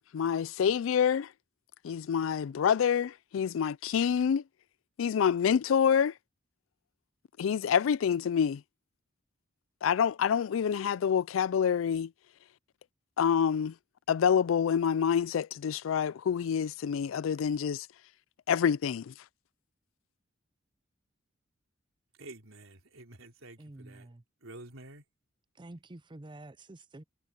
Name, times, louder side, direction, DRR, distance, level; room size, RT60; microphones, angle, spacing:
voice 1, 0.1-1.3 1.8-4.4 5.0-6.1 7.4-8.6 9.8-12.1 13.2-13.7 14.1-17.9 18.5-19.1, left 7 dB, 75° left, 0.4 m, -27 dB
voice 2, 22.1-24.1 24.4-25.0, right 2 dB, 90° right, 3.8 m, -49 dB
voice 3, 23.6-24.2 25.6-27.0, right 2 dB, 25° right, 0.6 m, -48 dB
head